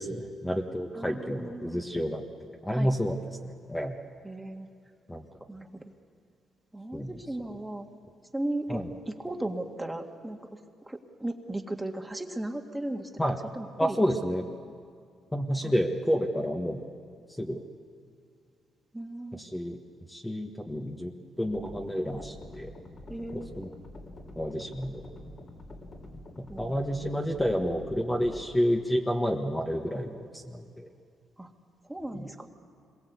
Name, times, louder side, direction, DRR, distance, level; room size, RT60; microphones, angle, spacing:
voice 1, 0.0-3.2 3.4-4.0 5.1-5.2 6.9-7.2 8.7-8.9 13.2-13.4 13.8-14.5 15.3-16.8 17.4-17.6 19.3-19.8 20.1-21.1 21.4-22.7 23.3-23.7 24.3-25.0 26.4-30.9 32.1-32.3, equal, 10° left, 1 dB, 1.6 m, -30 dB
voice 2, 0.9-1.8 2.7-2.9 4.2-4.7 5.5-5.9 6.7-7.9 8.3-10.6 10.9-13.1 13.5-14.0 15.6-15.7 18.9-19.4 23.1-23.5 26.5-26.8 31.4-31.5 31.9-32.5, right 1 dB, 10° right, 3 dB, 2.0 m, -36 dB
sound 1, 21.4-28.4, left 1 dB, 40° left, 3.6 m, -46 dB
26.5 x 22.0 x 8.3 m, 2.4 s
cardioid pair, 90°, 0 cm